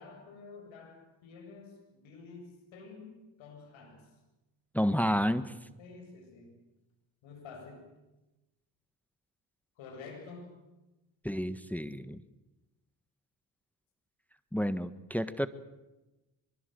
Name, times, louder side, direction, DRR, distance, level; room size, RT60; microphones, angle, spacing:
voice 1, 0.0-3.1 3.4-4.1 5.8-6.6 7.2-7.9 9.8-10.5, left 4 dB, 75° left, 3 dB, 7.7 m, -49 dB
voice 2, 4.7-5.5 11.2-12.2 14.5-15.5, equal, 5° left, 13 dB, 1.4 m, -30 dB
23.5 x 22.5 x 7.9 m, 1.0 s
hypercardioid pair, 55°, 46 cm